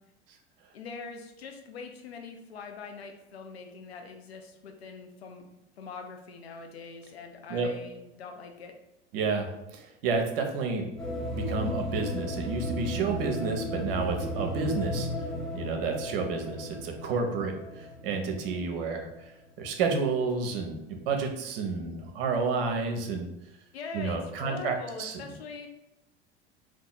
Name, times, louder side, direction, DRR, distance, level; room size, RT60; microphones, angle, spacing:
voice 1, 0.7-5.5 5.8-8.7 23.7-25.7, left 4 dB, 80° left, 4 dB, 0.6 m, -43 dB
voice 2, 9.1-10.9 11.3-15.1 15.5-19.3 19.6-23.3 23.9-25.2, right 4 dB, 65° right, 3 dB, 0.7 m, -30 dB
sound 1, 11.0-19.2, left 1 dB, ahead, 0.8 m, -35 dB
2.8 x 2.4 x 3.8 m, 0.91 s
figure-of-eight pair, 75°, 31 cm